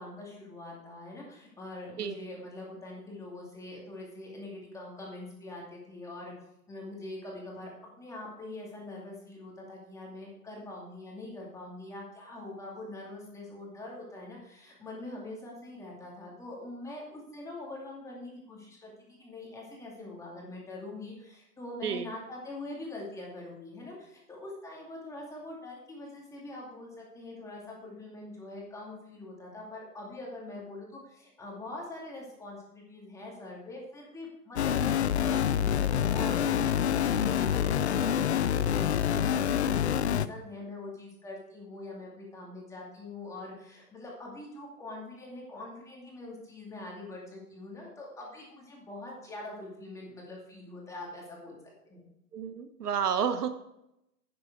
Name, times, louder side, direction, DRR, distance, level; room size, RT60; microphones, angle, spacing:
voice 1, 0.0-6.3 6.7-7.7 8.0-51.5 51.9-52.0, left 2 dB, 5° left, -3 dB, 2.3 m, -43 dB
sound 1, 34.6-40.3, left 9 dB, 45° left, 0.5 m, -27 dB
voice 2, 52.3-53.5, right 7 dB, 70° right, 10 dB, 1.2 m, -30 dB
10.5 x 9.6 x 4.6 m, 0.84 s
hypercardioid pair, 150°, 48 cm